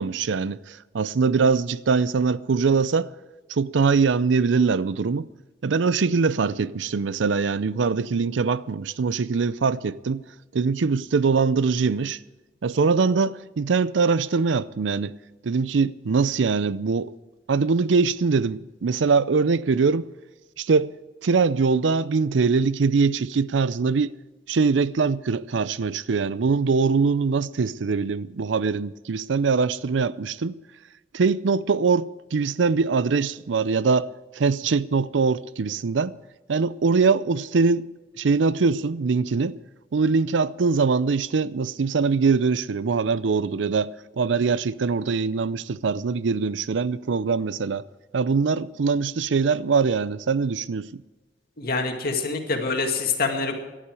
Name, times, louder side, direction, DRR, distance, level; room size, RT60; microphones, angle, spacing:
voice 1, 0.0-3.1 3.5-5.3 5.6-10.2 10.5-12.2 12.6-15.1 15.4-17.1 17.5-20.1 20.6-20.9 21.2-24.1 24.5-30.6 31.1-34.1 34.3-36.2 36.5-37.9 38.2-39.6 39.9-43.9 44.2-47.9 48.1-51.0, right 4 dB, 75° right, 0.5 m, -22 dB
voice 2, 51.6-53.6, left 4 dB, 55° left, 2.2 m, -25 dB
18.0 x 11.5 x 4.8 m
head